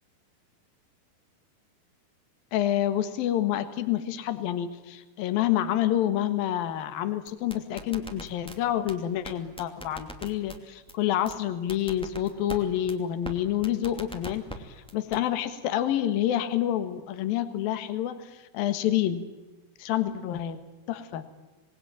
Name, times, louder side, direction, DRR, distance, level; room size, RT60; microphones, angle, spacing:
voice 1, 2.5-19.2 19.8-20.6 20.9-21.2, left 12 dB, 65° left, 10 dB, 3.1 m, -28 dB
sound 1, 7.3-8.6 8.9-9.0 9.2-9.3 9.6-10.6 10.9-11.0 11.3-11.4 11.7-12.6 12.9-13.0 13.2-13.3 13.6-14.6 14.9-15.2, right 1 dB, ahead, 1.3 m, -39 dB
27.0 x 20.0 x 9.0 m, 1.2 s
omnidirectional pair, 5.0 m